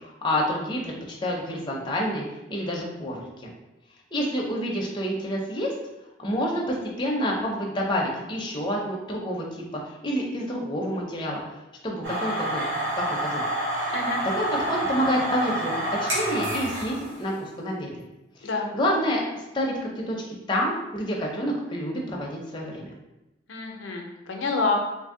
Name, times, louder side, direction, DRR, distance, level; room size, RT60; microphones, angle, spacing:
voice 1, 0.0-0.9 1.2-2.2 2.5-3.2 4.1-5.7 6.2-9.6 10.0-11.4 11.8-12.6 12.9-13.4 14.2-17.9 18.4-18.5 18.7-20.2 20.5-22.9, equal, 25° left, -2 dB, 0.5 m, -28 dB
sound 1, 12.0-17.2, right 1 dB, 75° right, 1.0 m, -28 dB
voice 2, 23.5-24.8, left 4 dB, 85° left, 1 dB, 0.5 m, -27 dB
2.7 x 2.6 x 3.7 m, 0.96 s
head